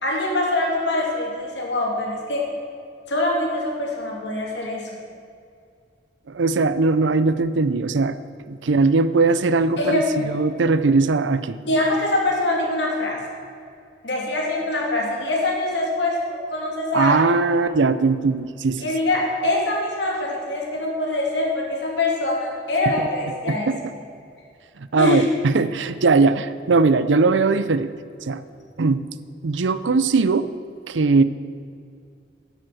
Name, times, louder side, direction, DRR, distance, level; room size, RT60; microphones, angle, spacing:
voice 1, 0.0-2.4 3.1-4.9 9.8-10.2 11.6-13.2 14.0-17.3 18.8-23.7 25.0-25.2, left 2 dB, 70° left, -2 dB, 2.8 m, -24 dB
voice 2, 6.3-8.2 8.5-11.6 16.9-18.9 23.0-23.1 23.5-23.8 24.8-27.9 28.2-28.4 28.8-29.0 29.4-30.5 30.9-31.2, right 3 dB, 90° right, 14 dB, 0.6 m, -20 dB
11.0 x 7.6 x 7.8 m, 2.3 s
head